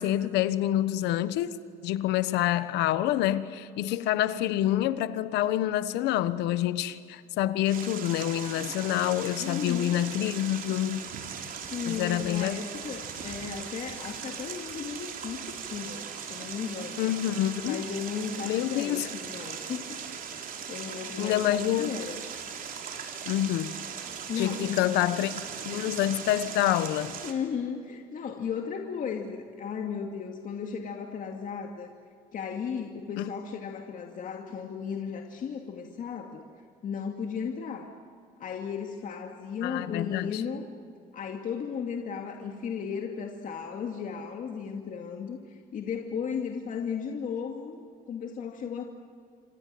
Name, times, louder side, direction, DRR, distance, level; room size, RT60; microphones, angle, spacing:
voice 1, 0.0-11.1 11.8-12.6 17.0-17.8 18.4-19.1 21.2-22.0 23.2-23.7 24.4-25.3 25.6-27.2 33.2-33.3 39.6-40.4, left 13 dB, 85° left, 1.3 m, -27 dB
sound 1, 7.7-27.3, right 7 dB, 55° right, 3.6 m, -39 dB
voice 2, 9.4-10.0 11.7-17.0 17.6-20.0 20.7-22.2 24.3-24.8 27.2-31.9 32.3-36.4 36.8-37.9 38.4-40.7 41.1-48.8, left 6 dB, 50° left, 2.4 m, -35 dB
27.5 x 26.5 x 7.8 m
cardioid pair, 110°, 17 cm